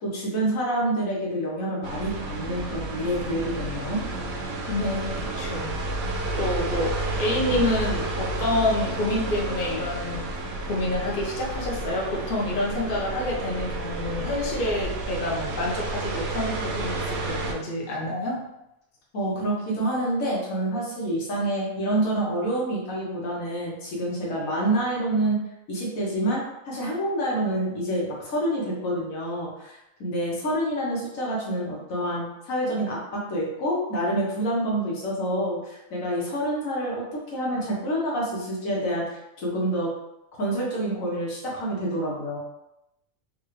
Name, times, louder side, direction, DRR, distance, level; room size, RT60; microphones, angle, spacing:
voice 1, 0.0-4.0 19.1-25.4 25.7-39.9 40.4-42.4, right 1 dB, 75° left, -4 dB, 1.4 m, -27 dB
sound 1, 1.8-17.5, right 2 dB, 60° right, 0.7 m, -31 dB
voice 2, 4.7-5.8 6.3-18.4, left 1 dB, 50° left, -2 dB, 0.7 m, -28 dB
3.8 x 2.5 x 3.1 m, 0.89 s
omnidirectional pair, 1.5 m